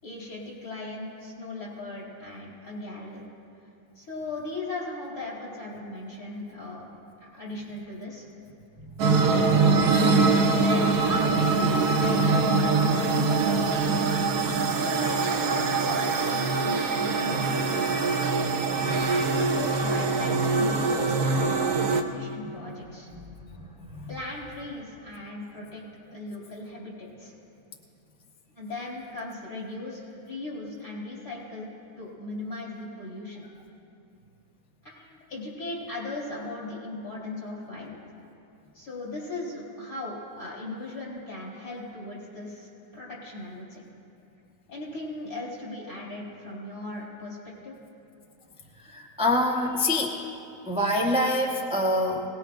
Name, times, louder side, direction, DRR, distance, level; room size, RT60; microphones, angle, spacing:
voice 1, 0.0-3.3 3.9-8.3 9.6-10.1 10.5-13.4 14.7-18.2 19.0-23.1 24.1-25.8 26.1-27.3 28.5-31.7 32.0-33.5 34.8-38.0 38.7-43.8 44.7-47.7, left 2 dB, 55° left, -6 dB, 4.9 m, -38 dB
sound 1, 9.0-22.0, right 4 dB, 80° right, 1.3 m, -23 dB
voice 2, 48.9-50.2 50.7-52.2, left 1 dB, 5° right, -2 dB, 0.8 m, -25 dB
22.0 x 19.0 x 2.5 m, 2.8 s
omnidirectional pair, 1.7 m